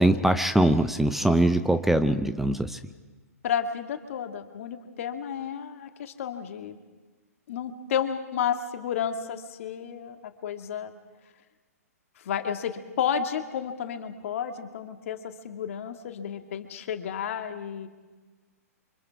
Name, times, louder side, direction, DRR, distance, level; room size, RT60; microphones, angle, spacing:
voice 1, 0.0-2.8, right 1 dB, 5° right, 10 dB, 0.7 m, -22 dB
voice 2, 3.4-6.8 7.5-10.9 12.2-17.9, left 8 dB, 55° left, 6 dB, 2.0 m, -32 dB
28.0 x 25.0 x 4.8 m, 1.3 s
figure-of-eight pair, 120°, 9 cm